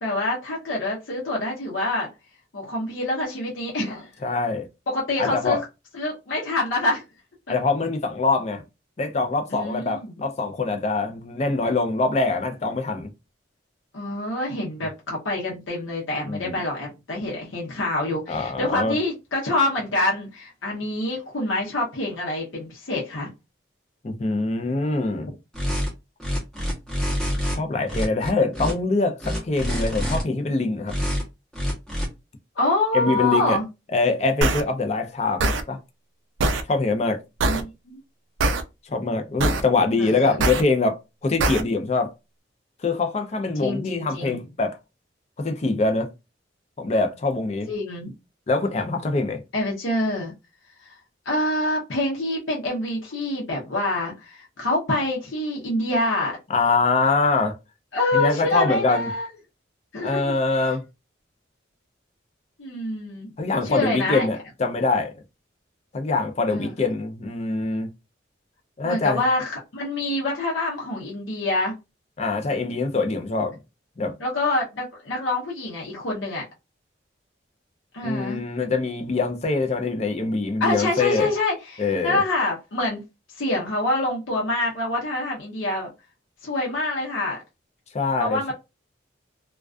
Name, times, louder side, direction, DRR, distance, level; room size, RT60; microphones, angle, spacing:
voice 1, 0.0-2.1 2.5-4.1 4.9-5.6 5.9-7.0 9.5-10.2 13.9-23.3 32.6-33.6 37.4-38.0 40.0-40.6 43.6-44.4 47.7-48.1 49.5-50.3 50.8-50.9 51.3-56.4 57.9-59.3 59.9-60.4 62.6-63.3 63.6-64.3 66.5-66.7 68.8-71.8 74.2-76.4 77.9-78.4 80.6-83.0 83.4-85.9 86.4-87.4 88.1-88.5, left 2 dB, 80° left, 0.7 m, -26 dB
voice 2, 4.2-4.7 5.2-5.6 7.5-8.6 9.0-13.1 16.2-16.6 18.3-19.0 24.0-25.3 27.5-31.0 32.9-33.6 33.9-35.8 36.7-37.2 38.9-42.1 42.8-44.8 45.4-46.1 46.8-47.7 48.5-49.4 56.5-57.5 58.1-59.1 60.0-60.8 63.4-65.1 65.9-67.9 68.8-69.2 72.2-73.6 74.0-74.1 78.0-81.3 81.8-82.2 87.9-88.5, left 3 dB, 35° left, 0.4 m, -24 dB
sound 1, 25.5-25.9 26.2-27.6 27.9-28.7 29.2-30.2 30.9-31.2 31.5-32.1, equal, 5° left, 0.7 m, -26 dB
sound 2, 34.4-34.6 35.4-35.6 36.4-36.6 37.4-37.6 38.4-38.6 39.4-39.6 40.4-40.6 41.4-41.6, right 2 dB, 75° right, 0.4 m, -21 dB
2.3 x 2.2 x 2.4 m
head